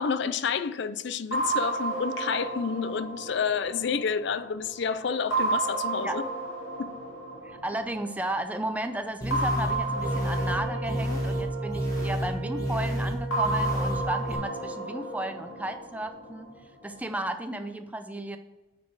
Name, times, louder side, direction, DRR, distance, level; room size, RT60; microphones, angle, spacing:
voice 1, 0.0-6.2 6.8-6.9, left 6 dB, 55° left, 0.4 m, -29 dB
sound 1, 1.3-4.6 5.3-8.2 9.3-12.4 13.3-16.4, right 2 dB, 80° left, 2.0 m, -32 dB
voice 2, 7.4-16.5 16.8-18.4, right 1 dB, 5° right, 0.5 m, -34 dB
sound 2, 9.2-14.3, equal, 15° left, 1.6 m, -30 dB
Wind instrument woodwind instrument, 10.0-15.3, right 7 dB, 60° right, 1.0 m, -39 dB
9.4 x 4.2 x 4.6 m
head